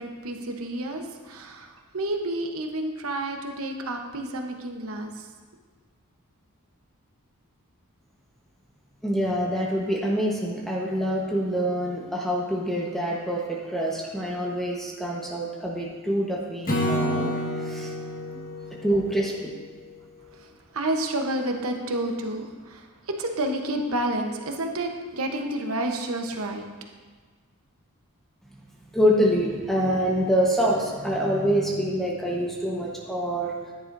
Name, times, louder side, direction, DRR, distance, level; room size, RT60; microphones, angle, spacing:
voice 1, 0.0-5.3 20.3-26.7, right 1 dB, 65° right, 3 dB, 1.1 m, -30 dB
voice 2, 9.0-17.9 18.8-19.5 28.9-33.5, equal, ahead, -4 dB, 1.2 m, -26 dB
Acoustic guitar / Strum, 16.7-20.0, equal, 40° left, 1.5 m, -29 dB
14.0 x 10.5 x 2.7 m, 1.5 s
head